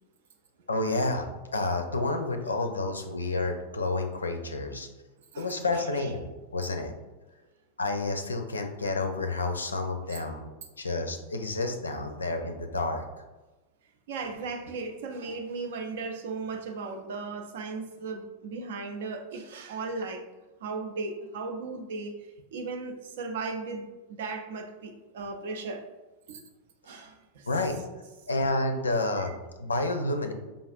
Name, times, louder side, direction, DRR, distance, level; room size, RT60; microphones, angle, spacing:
voice 1, 0.7-4.9 5.4-6.9 7.8-10.4 10.8-13.0 27.5-27.8 28.3-30.3, left 2 dB, 75° left, 6 dB, 0.4 m, -30 dB
voice 2, 5.3-6.1 6.6-6.8 10.1-10.2 14.1-20.2 20.6-22.2 22.5-25.9 26.3-26.4 26.8-27.8 29.1-29.3, right 4 dB, 55° right, 4 dB, 0.4 m, -37 dB
5.1 x 2.4 x 2.4 m, 1.1 s
figure-of-eight pair, 90°, 0 cm